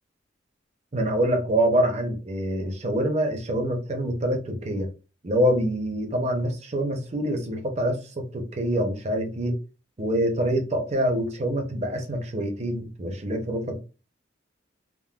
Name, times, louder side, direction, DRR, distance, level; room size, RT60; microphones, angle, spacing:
voice 1, 0.9-4.9 5.2-9.6 10.0-13.8, right 1 dB, 35° right, 0.6 m, -25 dB
3.6 x 2.0 x 2.3 m
head